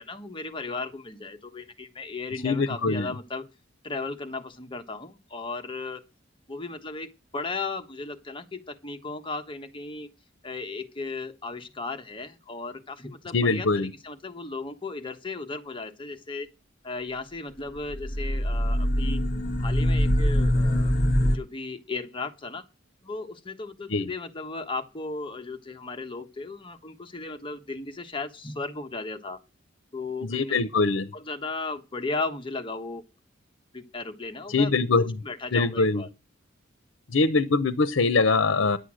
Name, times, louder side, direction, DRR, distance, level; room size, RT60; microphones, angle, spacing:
voice 1, 0.0-3.5 3.8-6.0 6.5-10.1 10.4-16.5 16.8-19.2 19.6-20.9 21.3-22.6 23.0-29.4 29.9-30.6 31.1-33.0 33.7-36.1, left 3 dB, 25° left, 1.3 m, -35 dB
voice 2, 2.4-3.1 13.3-13.9 23.9-24.1 30.2-31.1 34.5-35.0 35.5-36.0 37.1-38.8, left 3 dB, 80° left, 0.8 m, -23 dB
sound 1, 17.8-21.4, equal, 55° left, 1.5 m, -23 dB
10.5 x 8.1 x 6.3 m
head